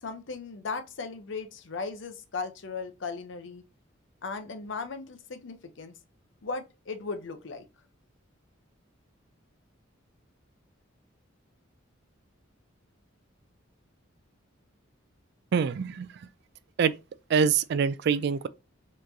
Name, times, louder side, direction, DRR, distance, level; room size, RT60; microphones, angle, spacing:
voice 1, 0.0-3.6 4.2-5.9 6.4-7.6, left 4 dB, 65° left, 0.6 m, -37 dB
voice 2, 15.5-16.1 16.8-16.9 17.3-18.5, right 6 dB, 55° right, 0.3 m, -24 dB
4.4 x 3.0 x 2.7 m
head